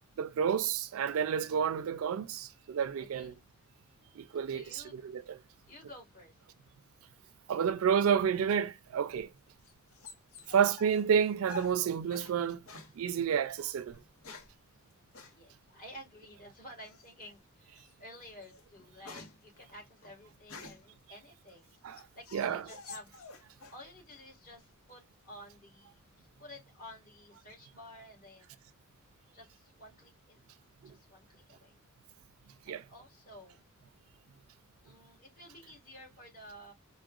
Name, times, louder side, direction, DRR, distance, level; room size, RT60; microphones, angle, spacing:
voice 1, 0.2-3.3 4.2-5.4 7.5-9.3 10.5-12.6 13.0-14.0 21.8-22.0 22.3-22.6 30.8-30.9 32.7-32.8, right 7 dB, 75° right, 0.4 m, -30 dB
voice 2, 3.0-3.5 4.5-5.0 5.7-6.4 10.3-10.5 15.3-23.1 23.4-28.6 29.3-30.4 30.8-31.8 32.7-33.6 34.8-36.7, left 1 dB, 45° left, 1.7 m, -52 dB
sound 1, 9.1-12.4 12.7-12.9 13.9-14.6 15.1-15.4 16.8-17.2 17.8-17.9 18.3-20.9 21.5-23.8 24.1-24.7, left 3 dB, 90° left, 0.9 m, -49 dB
4.6 x 2.1 x 2.3 m
head